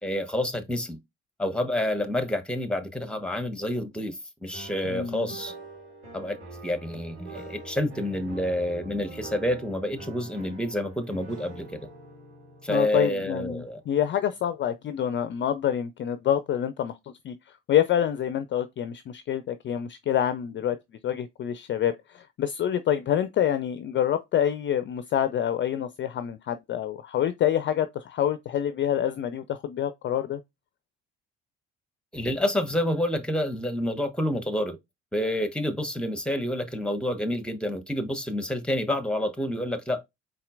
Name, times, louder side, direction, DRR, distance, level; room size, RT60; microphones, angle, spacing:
voice 1, 0.0-1.0 1.4-5.5 6.1-6.4 6.6-11.7 12.6-13.8 32.1-34.8 35.1-40.0, left 1 dB, 5° left, 0.9 m, -28 dB
sound 1, 4.5-14.5, right 2 dB, 85° right, 2.4 m, -44 dB
voice 2, 4.9-5.3 12.7-16.9 17.2-17.3 17.7-20.8 21.0-30.4, left 10 dB, 35° left, 0.5 m, -27 dB
4.2 x 4.0 x 2.5 m
figure-of-eight pair, 50°, 34 cm